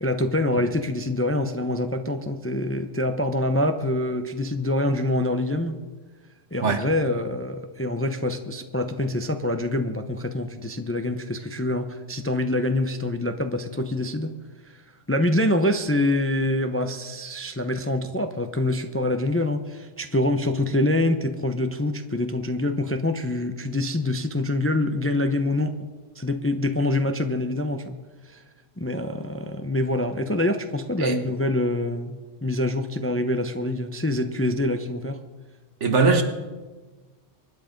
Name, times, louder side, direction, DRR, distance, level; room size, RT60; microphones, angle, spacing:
voice 1, 0.0-5.8 6.5-14.3 14.6-14.8 15.1-25.7 26.2-27.9 28.3-28.4 28.8-32.1 32.4-35.2, left 1 dB, 15° left, 7 dB, 0.6 m, -25 dB
voice 2, 35.8-36.2, right 4 dB, 65° right, 7 dB, 1.6 m, -21 dB
24.0 x 10.0 x 5.2 m, 1.3 s
omnidirectional pair, 1.3 m